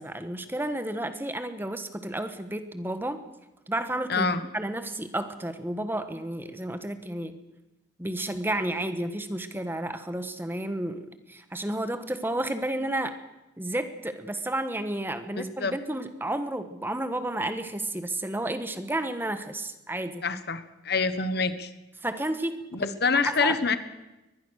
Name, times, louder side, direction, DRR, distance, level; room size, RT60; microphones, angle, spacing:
voice 1, 0.0-3.2 3.7-4.3 4.5-7.4 8.0-13.2 13.6-20.2 22.0-22.6 23.2-23.8, right 1 dB, 10° right, 9 dB, 1.3 m, -31 dB
voice 2, 4.1-4.4 15.3-15.7 20.2-21.7 22.7-23.8, left 4 dB, 60° left, 12 dB, 1.4 m, -26 dB
23.0 x 20.0 x 6.5 m, 1.0 s
head